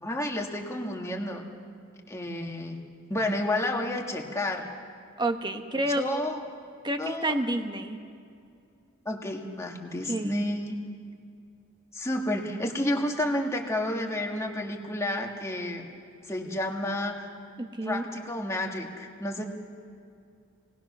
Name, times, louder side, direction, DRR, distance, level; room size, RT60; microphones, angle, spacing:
voice 1, 0.0-1.4 2.1-2.8 3.1-4.6 6.0-6.4 7.0-7.3 9.1-10.8 11.9-15.9 16.2-17.2 17.8-19.4, left 1 dB, 15° left, 1 dB, 1.8 m, -30 dB
voice 2, 5.2-6.0 6.8-8.0 10.1-10.3 17.6-18.0, right 1 dB, 20° right, 6 dB, 1.1 m, -29 dB
28.5 x 19.0 x 6.1 m, 2.4 s
head